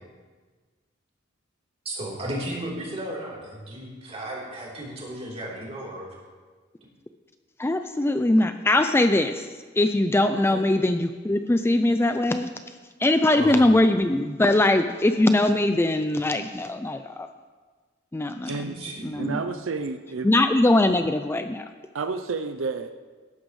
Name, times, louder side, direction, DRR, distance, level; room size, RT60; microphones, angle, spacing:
voice 1, 1.9-6.1 10.3-10.6 13.3-13.6 18.5-19.4, right 1 dB, 35° right, -5 dB, 3.6 m, -35 dB
voice 2, 7.6-9.5 9.8-12.5 13.0-17.3 18.1-18.5 19.0-19.4 20.2-21.6, left 1 dB, 10° left, 8 dB, 0.4 m, -21 dB
voice 3, 19.2-20.3 21.9-22.9, right 4 dB, 90° right, 8 dB, 0.6 m, -30 dB
17.5 x 11.5 x 3.2 m, 1.4 s
head